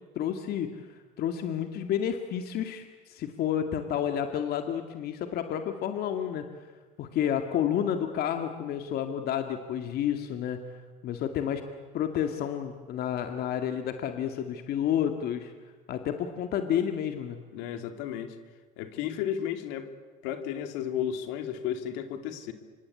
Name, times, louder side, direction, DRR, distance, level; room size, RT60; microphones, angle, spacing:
voice 1, 0.2-6.4 7.0-10.6 11.0-11.6 11.9-15.5 15.9-17.4, left 9 dB, 55° left, 6 dB, 2.2 m, -30 dB
voice 2, 17.5-18.4 18.8-19.9 20.2-22.5, left 9 dB, 75° left, 8 dB, 2.8 m, -33 dB
27.0 x 24.5 x 8.6 m, 1.4 s
supercardioid pair, 90°, 19 cm